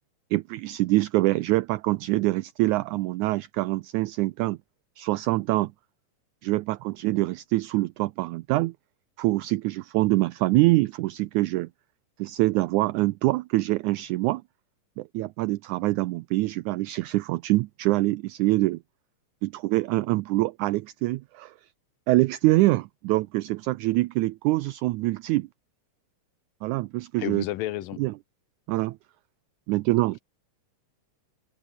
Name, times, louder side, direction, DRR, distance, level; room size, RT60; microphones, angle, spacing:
voice 1, 0.3-4.6 5.0-5.7 6.4-8.7 9.2-11.7 12.2-14.4 15.0-18.8 19.4-21.5 22.1-25.5 26.6-27.4 28.0-28.1 28.7-29.0 29.7-30.2, right 19 dB, 80° right, 1.8 m, -25 dB
voice 2, 27.2-28.0, left 15 dB, 85° left, 2.6 m, -31 dB
omnidirectional pair, 3.9 m